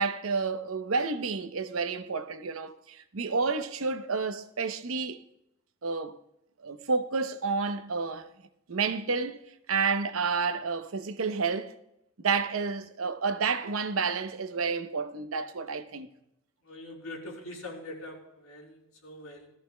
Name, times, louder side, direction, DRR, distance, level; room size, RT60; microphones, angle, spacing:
voice 1, 0.0-5.2 5.8-6.2 6.6-8.3 8.7-9.4 9.7-11.7 12.2-16.1, right 4 dB, 75° right, 0.7 m, -30 dB
voice 2, 16.6-19.5, left 1 dB, 85° left, 3.8 m, -43 dB
18.5 x 13.5 x 2.2 m
head